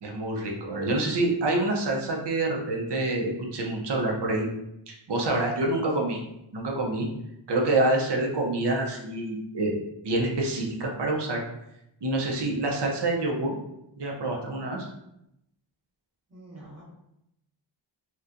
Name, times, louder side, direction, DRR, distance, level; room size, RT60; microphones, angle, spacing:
voice 1, 0.0-4.5 4.9-6.2 6.5-7.1 7.5-9.8 10.0-11.4 12.0-13.5 14.0-14.9, right 2 dB, 60° right, 0 dB, 0.7 m, -27 dB
voice 2, 16.3-16.8, right 1 dB, 30° right, -6 dB, 1.2 m, -46 dB
4.1 x 2.2 x 2.5 m, 0.82 s
wide cardioid pair, 135°, 48 cm